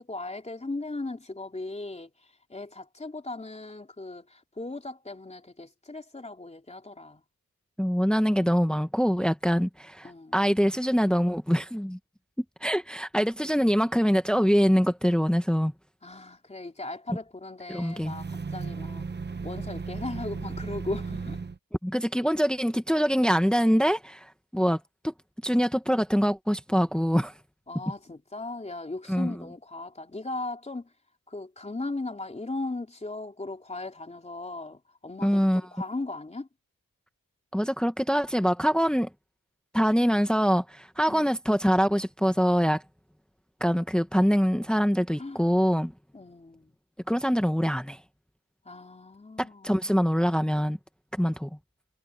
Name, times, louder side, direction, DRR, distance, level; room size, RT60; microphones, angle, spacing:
voice 1, 0.0-2.1 2.5-7.2 10.0-10.4 16.0-19.0 19.4-21.4 24.7-24.8 27.7-30.9 31.3-36.5 41.1-41.4 45.2-45.4 46.1-46.7 48.7-49.9, left 2 dB, 20° left, 3.7 m, -37 dB
voice 2, 7.8-12.0 12.6-15.7 17.7-18.2 21.8-25.1 25.4-27.3 29.1-29.4 35.2-35.6 37.5-39.1 39.7-42.8 43.6-45.9 47.1-48.0 49.4-50.8 51.1-51.5, equal, ahead, 1.3 m, -24 dB
sound 1, 17.9-21.6, right 4 dB, 30° right, 1.1 m, -35 dB
wide cardioid pair, 160°, 35 cm